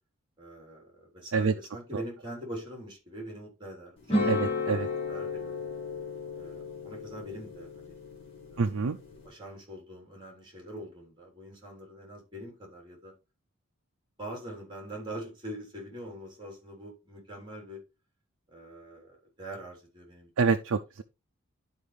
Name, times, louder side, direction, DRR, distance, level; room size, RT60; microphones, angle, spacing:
voice 1, 0.4-4.0 4.2-5.5 6.3-7.9 8.5-8.9 9.2-13.1 14.2-17.8 18.5-20.3, right 1 dB, 20° right, 3.7 m, -43 dB
sound 1, 4.1-9.3, left 3 dB, 25° left, 2.4 m, -34 dB
voice 2, 4.3-4.9 8.6-9.0 20.4-21.0, right 4 dB, 80° right, 0.5 m, -26 dB
11.5 x 4.8 x 3.3 m
head